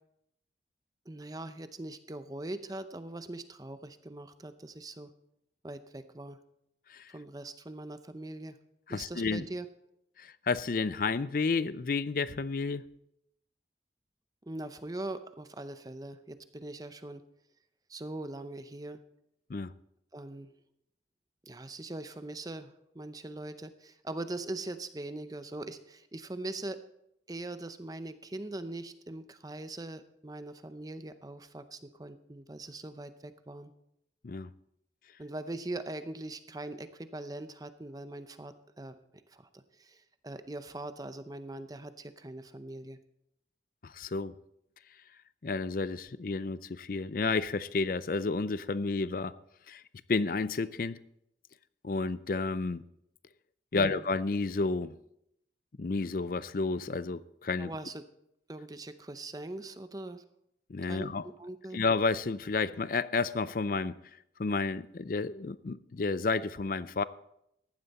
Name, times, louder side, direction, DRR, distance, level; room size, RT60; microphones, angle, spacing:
voice 1, 1.1-5.1 5.6-6.4 7.1-8.6 8.9-9.7 14.4-17.2 17.9-19.0 20.1-20.5 21.5-26.8 27.3-33.7 35.2-39.0 39.3-43.0 53.7-54.0 57.6-58.0 58.5-60.2 60.8-61.8, right 2 dB, 20° right, 0.6 m, -41 dB
voice 2, 8.9-9.5 10.2-12.8 19.5-19.7 34.2-34.5 43.8-44.4 45.4-49.3 49.7-49.8 50.1-51.0 51.8-52.8 53.7-55.0 55.8-57.7 60.7-61.2 61.7-63.9 64.4-67.0, left 4 dB, 50° left, 0.5 m, -31 dB
15.0 x 11.5 x 4.2 m
head